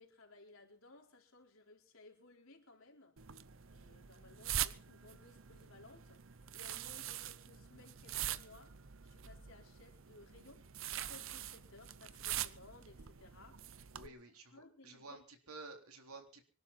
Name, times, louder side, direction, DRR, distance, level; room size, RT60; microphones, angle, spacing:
voice 1, 0.0-3.2 3.7-6.2 6.5-14.2 14.5-15.2, left 2 dB, 65° left, 4.5 m, -60 dB
sound 1, 3.2-14.1, right 11 dB, 60° right, 0.7 m, -44 dB
voice 2, 13.9-16.4, right 3 dB, 80° right, 3.7 m, -52 dB
25.0 x 12.0 x 4.3 m
head